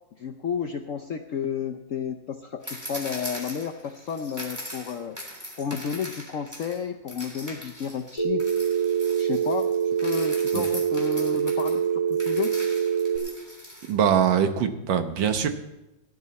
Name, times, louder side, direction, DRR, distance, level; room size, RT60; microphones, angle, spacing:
voice 1, 0.2-5.2 5.6-8.4 9.2-11.8 12.1-12.5, left 7 dB, 70° left, 5 dB, 0.7 m, -31 dB
sound 1, 2.6-6.8 7.1-13.9, equal, 10° right, 3.2 m, -40 dB
Telephone, 8.2-13.2, right 7 dB, 20° left, 3.7 m, -25 dB
voice 2, 13.9-15.5, right 8 dB, 75° right, 8 dB, 1.7 m, -22 dB
17.5 x 10.5 x 4.1 m, 0.99 s
omnidirectional pair, 2.1 m